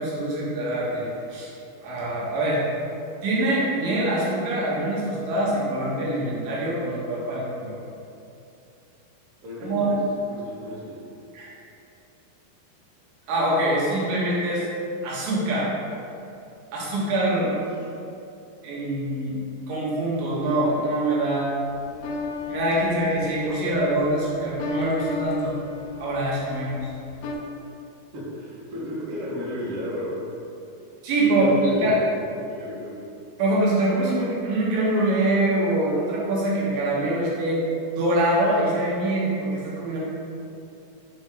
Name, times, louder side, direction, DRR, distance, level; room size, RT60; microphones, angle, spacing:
voice 1, 0.0-1.5 1.8-2.6 3.2-7.7 9.6-9.9 11.3-11.5 13.3-14.7 15.0-15.7 16.7-17.5 18.6-19.4 19.7-21.5 22.5-25.6 26.0-26.8 31.0-32.0 33.4-37.6 37.9-40.0, right 1 dB, 75° right, -6 dB, 2.8 m, -24 dB
voice 2, 9.4-10.0 10.3-11.0 17.3-17.5 28.1-30.2 31.2-32.1 32.5-33.0, equal, 55° right, -7 dB, 1.6 m, -33 dB
sound 1, 21.6-27.3, left 5 dB, 80° left, 2.5 m, -35 dB
6.9 x 4.4 x 3.6 m, 2.7 s
omnidirectional pair, 4.4 m